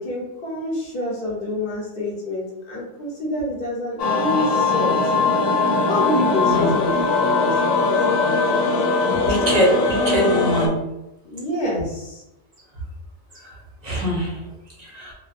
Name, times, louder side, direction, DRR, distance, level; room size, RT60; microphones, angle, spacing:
voice 1, 0.0-4.9 5.9-8.8 9.3-9.4 11.3-12.2, left 1 dB, 45° left, -4 dB, 0.9 m, -27 dB
sound 1, 4.0-10.7, left 3 dB, 85° left, 1.0 m, -20 dB
voice 2, 9.1-9.7 10.1-10.7 13.8-14.3 14.9-15.0, equal, 45° right, -4 dB, 0.6 m, -22 dB
2.7 x 2.1 x 2.4 m, 0.90 s
omnidirectional pair, 1.4 m